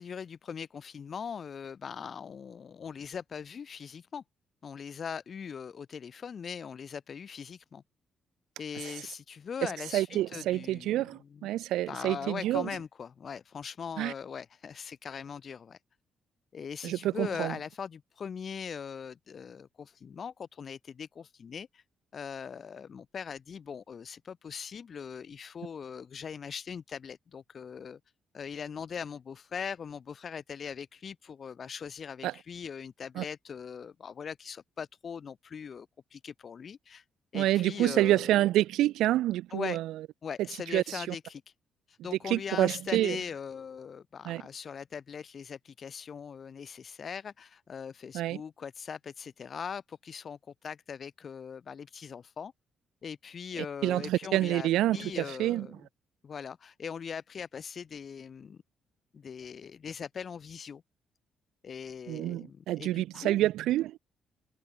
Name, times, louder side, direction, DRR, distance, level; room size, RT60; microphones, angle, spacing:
voice 1, 0.0-4.2 4.6-7.8 8.6-11.0 11.3-11.5 11.9-15.8 16.5-21.8 22.1-28.0 28.3-37.0 37.3-38.3 39.5-39.8 40.2-41.4 41.9-52.5 53.0-55.7 56.2-58.6 59.1-60.8 61.6-63.4, left 7 dB, 50° left, 7.0 m, -40 dB
voice 2, 9.9-12.7 14.0-14.1 16.8-17.5 32.2-32.3 33.2-33.3 37.3-39.9 40.7-41.1 42.2-43.2 44.2-44.4 48.1-48.4 53.8-55.7 62.1-64.0, right 14 dB, 85° right, 3.0 m, -28 dB
cardioid pair, 90°, 0 cm